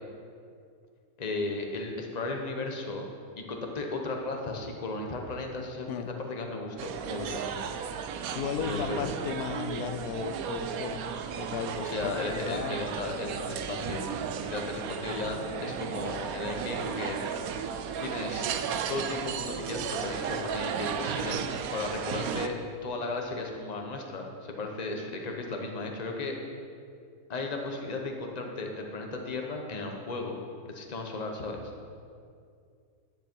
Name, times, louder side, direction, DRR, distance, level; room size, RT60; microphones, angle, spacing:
voice 1, 1.2-3.1 3.4-7.4 8.7-9.0 11.8-14.0 14.3-17.2 18.0-18.5 18.9-21.4 21.7-22.5 22.8-26.4 27.3-30.4 30.6-31.7, left 3 dB, 30° left, 2 dB, 1.1 m, -35 dB
sound 1, 6.8-22.5, right 7 dB, 75° right, 1.1 m, -34 dB
voice 2, 8.3-11.1 11.4-12.8 15.4-15.7, left 8 dB, 85° left, 10 dB, 1.1 m, -35 dB
10.0 x 9.8 x 4.6 m, 2.3 s
omnidirectional pair, 1.6 m